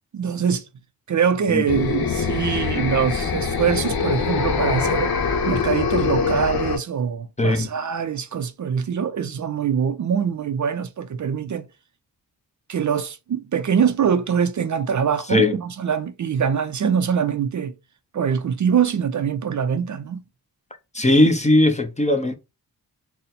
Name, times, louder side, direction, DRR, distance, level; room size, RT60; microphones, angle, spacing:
voice 1, 0.1-0.6 1.1-5.1 5.4-11.7 12.7-17.7 18.1-20.2, right 7 dB, 50° right, 0.4 m, -23 dB
sound 1, 1.7-6.8, left 5 dB, 65° left, 0.8 m, -23 dB
voice 2, 20.9-22.3, left 1 dB, 20° left, 0.6 m, -18 dB
4.0 x 2.1 x 4.0 m
wide cardioid pair, 120°, 39 cm